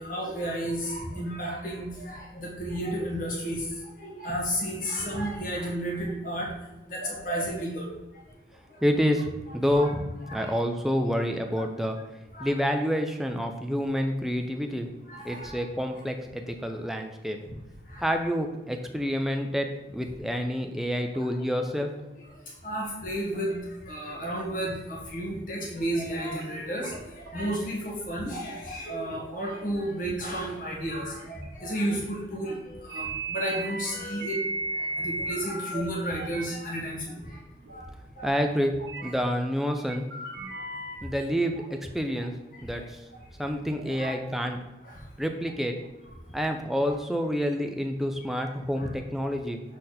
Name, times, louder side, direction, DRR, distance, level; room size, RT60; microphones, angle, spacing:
voice 1, 0.0-3.7 4.0-6.5 6.9-7.9 9.7-9.9 10.3-10.6 11.5-11.6 12.3-12.5 15.1-15.8 17.4-17.5 17.9-18.1 21.4-21.5 22.6-23.6 23.8-34.4 34.7-37.4 37.7-37.8 38.2-38.4 42.5-42.6 43.8-44.2 44.8-45.0 48.8-48.9, right 1 dB, 45° left, -3 dB, 1.5 m, -32 dB
voice 2, 8.8-12.0 12.4-14.9 15.2-17.4 18.0-19.7 19.9-21.9 38.2-38.8 39.0-40.1 41.0-42.3 42.6-43.0 43.4-44.6 45.2-45.8 46.3-49.6, equal, ahead, 4 dB, 0.5 m, -28 dB
sound 1, 25.9-26.0 26.4-26.5 26.8-27.3 27.8-28.0 28.5-28.6 30.2-30.3 30.7-31.0 31.4-31.5 32.9-35.8 36.2-36.5 37.3-37.4 37.6-37.7 38.9-39.3 39.8-41.0, right 2 dB, 75° right, 1.0 m, -35 dB
6.4 x 4.1 x 4.2 m, 1.1 s
head